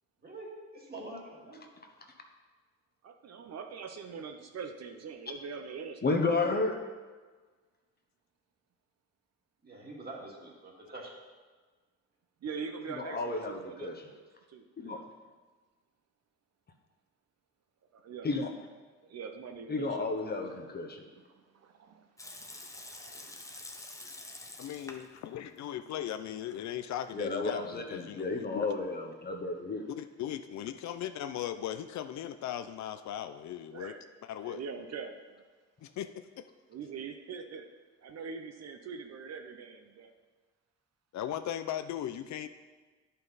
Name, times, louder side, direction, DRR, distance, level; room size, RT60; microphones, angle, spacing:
voice 1, 0.2-1.7 9.6-11.1, right 2 dB, 30° right, -2 dB, 2.1 m, -45 dB
voice 2, 3.0-6.6 12.4-15.1 17.9-18.3 19.0-20.1 21.4-22.1 22.4-23.8 33.7-34.1 34.4-35.4 36.7-37.7 38.0-40.1, right 5 dB, 60° right, 5 dB, 0.8 m, -43 dB
voice 3, 6.0-6.7 13.0-14.0 14.8-15.0 18.2-18.5 19.7-21.0 27.1-29.8, left 3 dB, 35° left, 3 dB, 1.0 m, -32 dB
Water tap faucet / Sink (filling or washing) / Liquid, 22.2-25.2 25.5-25.6 26.2-26.8, left 2 dB, 10° left, 0.8 m, -47 dB
voice 4, 24.6-28.7 29.9-33.9 34.3-34.6 35.8-36.4 41.1-42.5, left 11 dB, 65° left, 10 dB, 0.5 m, -38 dB
10.0 x 5.6 x 4.0 m, 1.4 s
cardioid pair, 90°, 30 cm